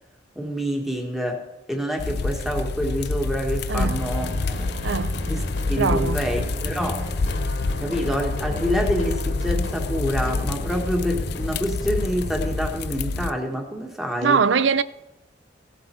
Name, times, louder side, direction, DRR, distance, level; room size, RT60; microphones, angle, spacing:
voice 1, 0.3-4.7 5.3-5.4 5.7-7.1 7.8-14.4, equal, ahead, 1.6 m, -27 dB
sound 1, 2.0-13.3, left 3 dB, 60° left, 0.5 m, -28 dB
sound 2, 3.9-12.7, left 1 dB, 90° left, 2.1 m, -34 dB
voice 2, 4.8-5.2 5.8-6.2 14.2-14.8, right 5 dB, 75° right, 0.5 m, -21 dB
16.5 x 7.6 x 4.6 m
head